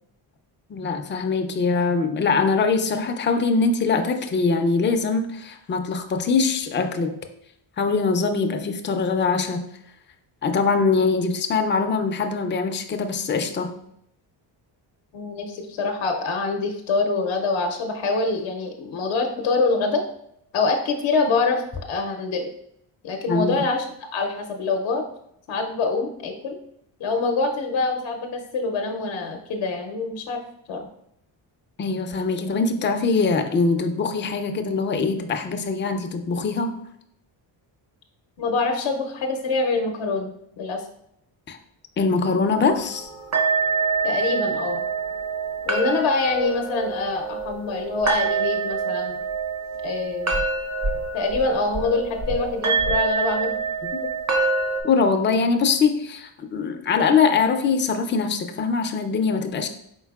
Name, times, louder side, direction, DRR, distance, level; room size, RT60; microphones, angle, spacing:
voice 1, 0.7-7.2 7.8-9.6 10.4-13.7 23.3-23.7 31.8-36.7 41.5-41.6 42.0-43.1 53.9-54.0 54.8-59.7, left 4 dB, 25° left, 6 dB, 0.4 m, -22 dB
voice 2, 15.1-20.0 20.5-21.6 21.9-22.5 23.0-23.9 24.1-25.0 25.5-26.6 27.0-30.4 30.7-30.8 38.4-40.9 44.0-44.9 45.7-49.2 49.8-50.4 51.1-53.5, left 3 dB, 75° left, 4 dB, 0.7 m, -25 dB
mixed bowls all, 42.6-54.8, right 4 dB, 35° right, 0.7 m, -26 dB
4.5 x 3.9 x 2.3 m, 0.73 s
cardioid pair, 105°, 46 cm